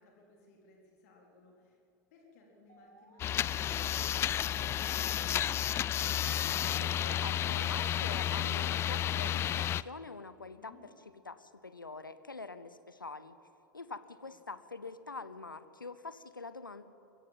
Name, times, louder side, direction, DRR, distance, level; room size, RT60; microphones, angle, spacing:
voice 1, 0.0-1.8 2.1-5.4 10.5-10.9 14.1-14.3, left 3 dB, 55° left, -1 dB, 3.7 m, -61 dB
Musical instrument, 2.7-8.3, right 2 dB, 85° right, 1.6 m, -57 dB
sound 1, 3.2-9.8, left 11 dB, 25° left, 0.4 m, -32 dB
voice 2, 6.8-10.7 11.3-13.4 13.7-16.8, left 3 dB, 85° left, 13 dB, 0.8 m, -45 dB
22.5 x 16.0 x 7.5 m, 2.7 s
figure-of-eight pair, 90°, 11 cm